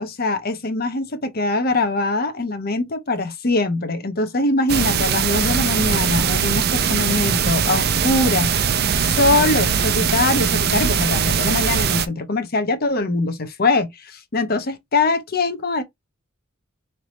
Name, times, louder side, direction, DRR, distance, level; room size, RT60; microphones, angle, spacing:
voice 1, 0.0-15.8, left 2 dB, 50° left, 0.8 m, -22 dB
sound 1, 4.7-12.1, right 7 dB, 50° right, 0.5 m, -20 dB
3.3 x 2.9 x 4.0 m
head